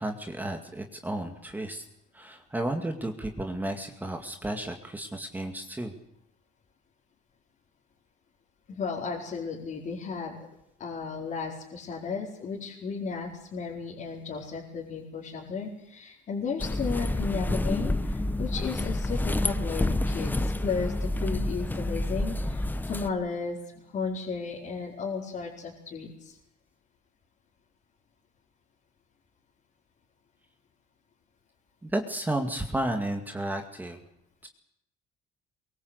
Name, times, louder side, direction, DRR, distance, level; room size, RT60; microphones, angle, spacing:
voice 1, 0.0-1.8 2.1-5.9 31.8-34.0 34.4-34.5, right 1 dB, 10° right, 4 dB, 2.3 m, -32 dB
voice 2, 8.7-10.4 10.8-23.6 23.9-26.4, left 5 dB, 45° left, -3 dB, 4.5 m, -34 dB
sound 1, 16.6-23.1, left 1 dB, 10° left, 1.1 m, -28 dB
23.5 x 22.5 x 8.2 m, 0.79 s
cardioid pair, 130°, 19 cm